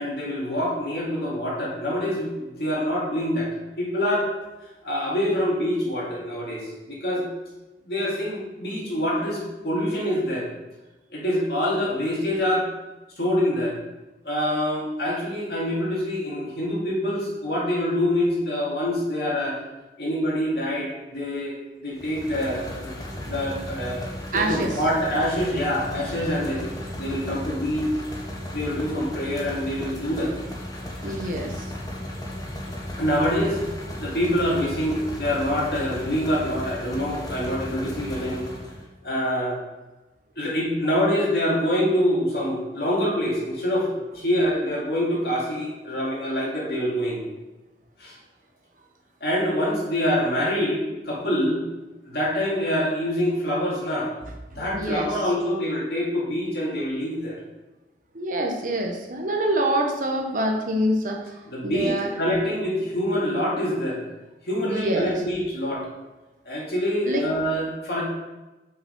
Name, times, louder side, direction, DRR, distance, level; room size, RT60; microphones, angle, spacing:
voice 1, 0.0-3.5 3.8-4.3 4.8-7.3 7.8-10.5 11.1-12.7 13.2-13.7 14.2-19.6 20.0-21.6 21.8-22.9 23.3-26.6 27.0-27.9 28.5-30.3 31.0-31.2 33.0-33.6 34.0-38.5 39.0-39.6 40.4-47.2 48.0-48.2 49.2-51.6 52.0-54.1 54.6-57.4 61.5-64.0 64.4-65.9 66.4-68.0, equal, 60° left, -5 dB, 2.4 m, -25 dB
sound 1, 22.0-38.9, left 1 dB, 20° left, 1.2 m, -35 dB
voice 2, 24.3-24.8 31.0-31.6 54.7-55.1 58.1-61.2 61.6-62.1 64.6-65.2 67.1-67.2, right 1 dB, 50° right, 2 dB, 1.0 m, -25 dB
5.7 x 5.6 x 5.4 m, 1.1 s
head